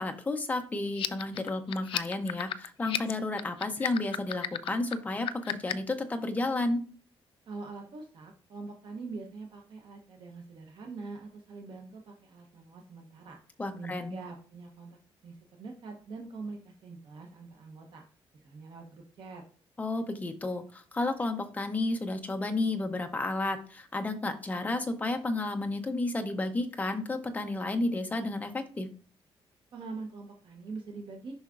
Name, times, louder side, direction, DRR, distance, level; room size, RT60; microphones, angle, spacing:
voice 1, 0.0-6.8 13.6-14.2 19.8-28.9, left 2 dB, 15° left, 6 dB, 0.6 m, -32 dB
sound 1, 0.9-5.9, left 11 dB, 60° left, 0.4 m, -34 dB
voice 2, 7.5-13.4 13.7-15.0 15.2-18.0 18.3-19.4 29.7-31.3, right 3 dB, 50° right, 2 dB, 0.9 m, -44 dB
6.9 x 5.5 x 2.5 m, 0.41 s
cardioid pair, 175°, 10 cm